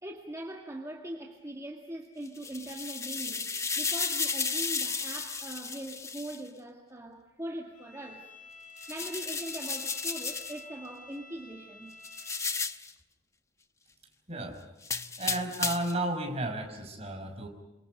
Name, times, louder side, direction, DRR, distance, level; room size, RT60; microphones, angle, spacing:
voice 1, 0.0-8.3 8.9-12.0, right 1 dB, 15° right, 1 dB, 2.1 m, -41 dB
sound 1, 2.3-6.4 8.8-10.6 12.0-12.9 14.8-16.0, left 4 dB, 15° left, 0.9 m, -33 dB
Bowed string instrument, 7.7-12.6, left 3 dB, 45° left, 6.0 m, -49 dB
voice 2, 14.3-14.6 15.2-17.5, right 1 dB, 35° right, 4 dB, 5.7 m, -33 dB
28.5 x 27.0 x 5.3 m, 1.1 s
head